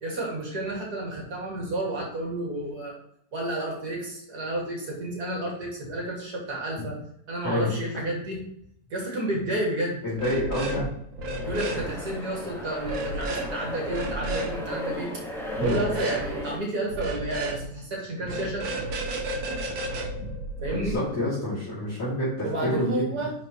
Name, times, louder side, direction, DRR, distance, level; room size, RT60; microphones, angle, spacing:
voice 1, 0.0-2.9 3.3-7.0 7.3-8.4 8.9-10.0 11.5-15.1 15.5-18.7 20.6-21.0 22.4-23.3, right 1 dB, 55° right, -2 dB, 2.7 m, -31 dB
voice 2, 10.0-10.9 15.6-15.7 20.2-20.3 20.7-23.0, left 1 dB, 45° left, -11 dB, 3.3 m, -28 dB
sound 1, 10.1-10.8 11.1-11.8 12.8-13.5 13.8-14.5 15.5-16.3 16.9-17.6 18.2-20.9, right 1 dB, 80° right, 1.9 m, -31 dB
sound 2, 11.4-16.6, left 1 dB, ahead, 1.6 m, -36 dB
10.5 x 5.2 x 3.1 m, 0.72 s
omnidirectional pair, 2.0 m